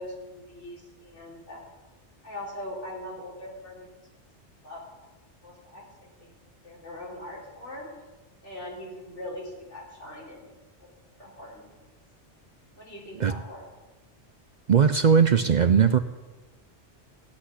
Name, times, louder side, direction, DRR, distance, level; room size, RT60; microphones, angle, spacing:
voice 1, 0.0-1.7 2.2-3.9 4.6-5.1 5.4-5.8 6.2-6.3 6.6-7.9 8.4-10.5 10.8-11.6 12.8-13.7, left 1 dB, 85° left, -4 dB, 4.6 m, -41 dB
voice 2, 14.7-16.0, right 7 dB, 55° right, 10 dB, 0.5 m, -19 dB
16.0 x 6.2 x 9.9 m, 1.2 s
omnidirectional pair, 1.2 m